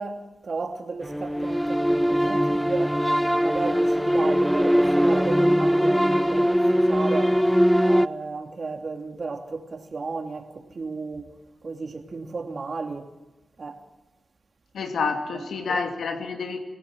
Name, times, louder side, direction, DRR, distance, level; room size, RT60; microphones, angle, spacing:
voice 1, 0.0-3.0 3.4-7.4 7.9-11.3 11.6-13.1 13.6-13.9 15.7-15.8, right 4 dB, 55° right, 2.9 m, -33 dB
sound 1, 1.0-8.1, equal, ahead, 0.8 m, -21 dB
voice 2, 14.7-16.6, left 4 dB, 80° left, 2.9 m, -28 dB
27.0 x 17.0 x 7.6 m
cardioid pair, 50°, 0 cm